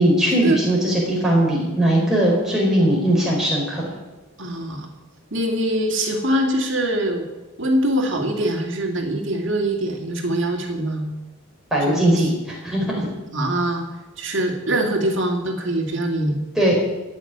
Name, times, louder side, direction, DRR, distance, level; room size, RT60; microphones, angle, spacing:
voice 1, 0.0-3.9 11.7-13.1 16.6-16.8, right 1 dB, ahead, -4 dB, 4.6 m, -19 dB
voice 2, 4.4-4.9 5.3-7.2 7.6-11.1 11.9-12.3 13.3-13.9 14.2-16.4, right 1 dB, 55° right, 2 dB, 2.5 m, -23 dB
16.0 x 6.6 x 9.4 m, 1.1 s
head